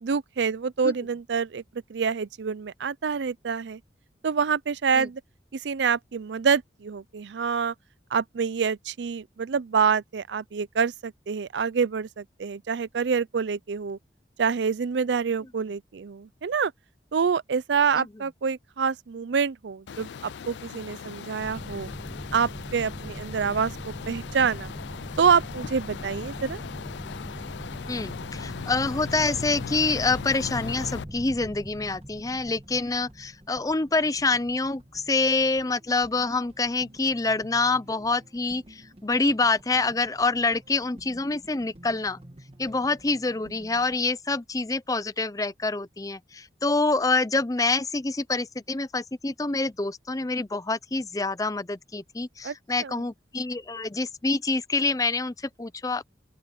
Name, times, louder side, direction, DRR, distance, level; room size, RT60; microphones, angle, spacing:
voice 1, 0.0-1.6 1.9-3.8 4.2-5.2 5.5-7.7 8.1-14.0 14.4-16.7 17.1-21.9 22.3-24.7 25.2-26.6 52.4-52.5 52.8-52.9, right 6 dB, 85° right, 0.5 m, -26 dB
sound 1, 19.9-31.0, left 6 dB, 85° left, 0.4 m, -38 dB
sound 2, 21.4-34.6, equal, 15° right, 1.5 m, -41 dB
sound 3, 24.2-44.0, right 1 dB, 35° right, 1.8 m, -53 dB
voice 2, 27.9-42.2 42.6-56.1, left 3 dB, 20° left, 0.6 m, -26 dB
open air
head